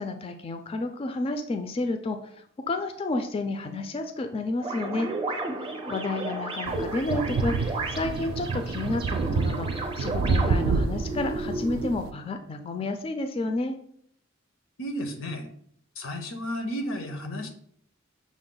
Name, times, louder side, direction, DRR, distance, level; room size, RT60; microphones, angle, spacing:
voice 1, 0.0-5.1 5.9-9.7 10.0-13.8, left 2 dB, 30° left, 7 dB, 0.3 m, -31 dB
sound 1, 4.6-11.9, right 2 dB, 25° right, 0.5 m, -33 dB
sound 2, 6.7-12.1, right 4 dB, 85° right, 0.3 m, -28 dB
voice 2, 14.8-15.5 16.0-17.5, equal, 90° left, 5 dB, 0.8 m, -33 dB
6.0 x 2.1 x 3.8 m, 0.64 s
head